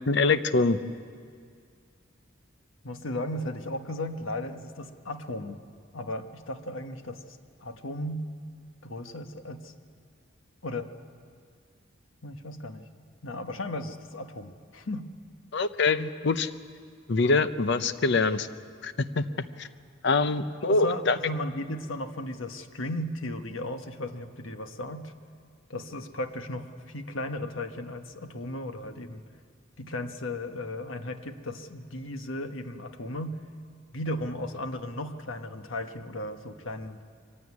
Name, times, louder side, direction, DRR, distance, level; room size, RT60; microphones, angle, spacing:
voice 1, 0.1-0.8 15.5-16.5 17.1-18.5 18.8-19.2 19.6-19.7 20.0-21.2, left 3 dB, 60° left, 12 dB, 0.7 m, -24 dB
voice 2, 2.8-5.6 5.9-8.2 8.8-9.7 10.6-10.9 12.2-12.8 13.2-15.1 20.6-25.1 25.7-29.2 29.8-33.4 33.9-37.0, left 1 dB, 80° left, 7 dB, 1.2 m, -35 dB
23.5 x 15.5 x 9.7 m, 2.2 s
head